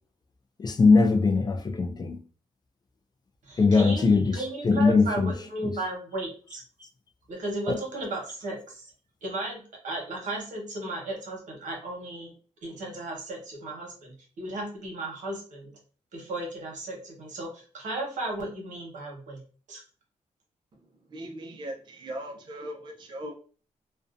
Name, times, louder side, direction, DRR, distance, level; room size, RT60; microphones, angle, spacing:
voice 1, 0.6-2.2 3.6-5.4 5.6-5.7 7.7-7.8, left 4 dB, 30° left, 0.3 m, -21 dB
voice 2, 3.5-4.0 4.3-6.6 7.3-8.8 9.2-12.3 12.6-15.7 16.1-19.4 19.7-19.8, right 2 dB, 75° right, 1.0 m, -35 dB
voice 3, 21.1-23.3, right 1 dB, 35° right, 0.4 m, -38 dB
2.6 x 2.1 x 2.4 m
wide cardioid pair, 115°, 13 cm